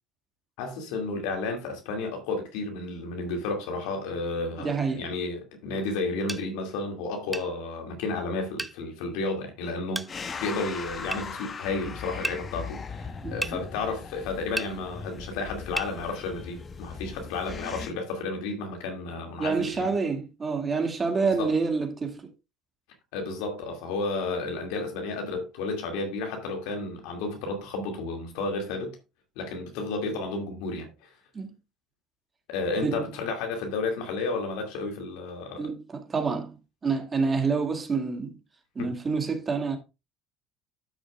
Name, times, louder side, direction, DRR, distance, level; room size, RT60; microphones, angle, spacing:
voice 1, 0.6-19.9 21.4-21.5 23.1-29.0 29.4-31.1 32.5-35.7 38.8-38.9, left 3 dB, 70° left, 2.4 m, -32 dB
voice 2, 4.6-5.0 13.2-13.4 19.4-22.3 31.3-31.6 32.8-33.1 35.6-36.6 36.8-38.4 38.8-39.8, right 4 dB, 35° right, 2.1 m, -27 dB
sound 1, 6.3-6.4 7.3-7.5 8.6-8.8 9.9-10.1 11.1-11.2 12.2-12.4 13.4-13.6 14.6-14.7 15.8-15.9, right 1 dB, 10° right, 0.6 m, -32 dB
sound 2, 10.1-17.9, left 5 dB, 40° left, 1.2 m, -39 dB
12.0 x 6.5 x 2.4 m
hypercardioid pair, 60°, 0 cm